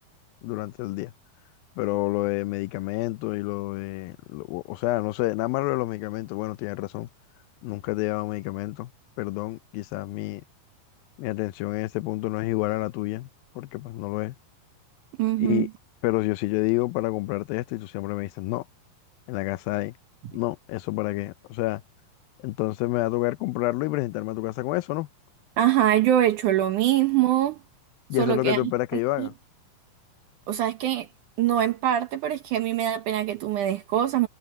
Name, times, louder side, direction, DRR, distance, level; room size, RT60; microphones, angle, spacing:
voice 1, 0.4-1.1 1.8-7.1 7.6-8.9 9.2-10.4 11.2-13.3 13.6-14.4 15.4-15.7 16.0-18.6 19.3-19.9 20.3-21.8 22.4-25.1 28.1-29.3, left 20 dB, 85° left, 2.5 m, -28 dB
voice 2, 15.2-15.7 25.6-27.6 28.2-28.7 29.2-29.3 30.5-31.1 31.4-34.3, right 12 dB, 70° right, 2.2 m, -23 dB
omnidirectional pair, 4.1 m